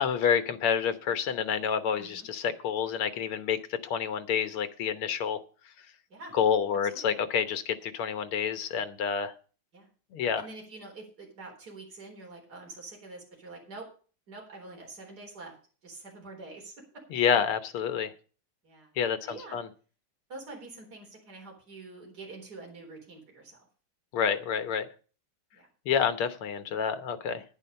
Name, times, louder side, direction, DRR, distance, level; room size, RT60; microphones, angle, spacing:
voice 1, 0.0-5.4 6.3-9.3 10.1-10.4 17.1-18.1 19.0-19.7 24.1-24.9 25.9-27.4, left 7 dB, 80° left, 11 dB, 2.0 m, -28 dB
voice 2, 2.0-2.3 6.1-6.4 6.8-7.2 9.7-9.9 10.4-13.9 14.3-15.5 15.8-16.7 18.6-18.9 19.3-19.6 20.3-23.6 25.5-25.7, right 3 dB, 45° right, -1 dB, 4.6 m, -46 dB
10.5 x 10.0 x 5.4 m, 0.38 s
omnidirectional pair, 2.4 m